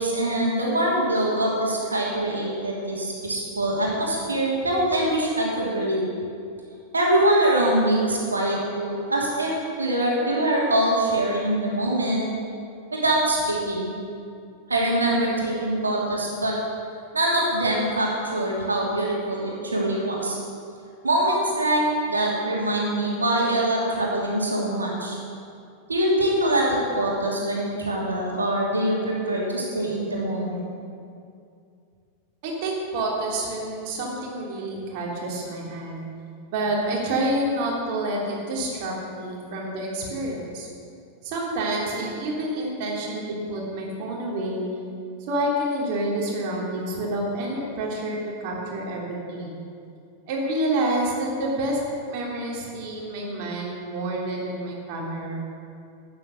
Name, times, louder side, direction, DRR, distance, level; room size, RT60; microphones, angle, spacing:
voice 1, 0.0-6.0 6.9-9.5 9.8-12.3 12.9-13.9 14.7-16.5 17.1-20.4 21.0-25.2 25.9-30.7, right 1 dB, 75° right, -3 dB, 2.8 m, -24 dB
voice 2, 32.4-36.1 36.5-40.7 41.2-44.7 45.3-48.2 48.4-49.5 50.3-51.8 52.1-55.4, right 1 dB, 45° right, -2 dB, 3.1 m, -28 dB
12.5 x 9.4 x 6.4 m, 2.4 s
figure-of-eight pair, 90°, 0 cm